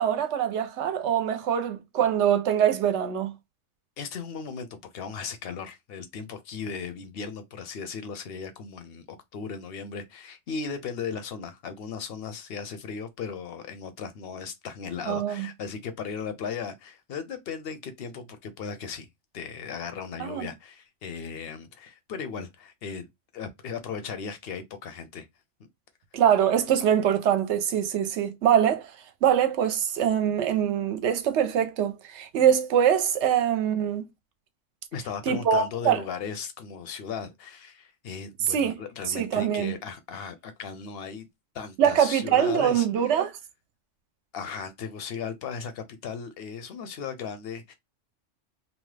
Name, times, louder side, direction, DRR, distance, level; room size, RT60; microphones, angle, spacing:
voice 1, 0.0-3.3 15.1-15.5 20.2-20.5 26.1-28.9 29.2-34.0 35.3-36.0 38.5-38.8 39.1-39.7 41.8-43.3, right 9 dB, 70° right, 0.8 m, -23 dB
voice 2, 4.0-19.1 19.3-23.1 23.3-25.3 34.9-41.3 41.5-42.9 44.3-47.7, left 6 dB, 60° left, 0.7 m, -37 dB
2.8 x 2.1 x 3.2 m
omnidirectional pair, 1.3 m